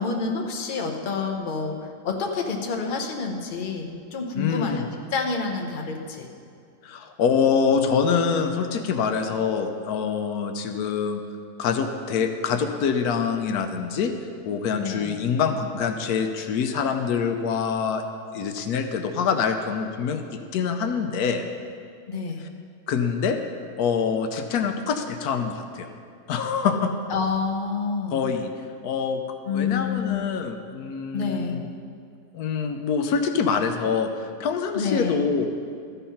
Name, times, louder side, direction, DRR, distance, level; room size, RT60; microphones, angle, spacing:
voice 1, 0.0-1.8 2.0-4.8 5.1-6.3 14.7-15.2 22.1-22.4 27.1-28.2 29.4-30.3 31.1-31.6 34.7-35.2, left 5 dB, 40° left, 2 dB, 0.9 m, -28 dB
voice 2, 4.4-4.8 6.8-11.2 11.6-14.1 14.4-18.0 18.3-21.5 22.9-23.4 23.8-25.9 26.3-26.9 28.1-28.5 28.8-29.2 29.5-31.6 32.3-35.5, left 6 dB, 80° left, 6 dB, 1.1 m, -25 dB
13.0 x 5.5 x 5.7 m, 2.4 s
omnidirectional pair, 1.6 m